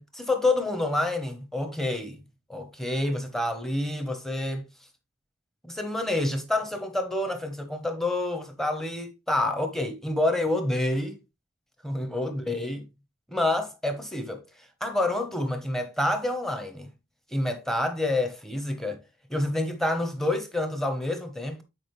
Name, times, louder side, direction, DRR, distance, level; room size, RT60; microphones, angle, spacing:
voice 1, 0.0-2.2 2.5-4.7 5.6-11.2 11.8-12.9 13.3-14.4 14.8-16.9 17.3-19.0 19.3-21.6, left 1 dB, ahead, 1.1 m, -28 dB
8.6 x 4.9 x 3.2 m
head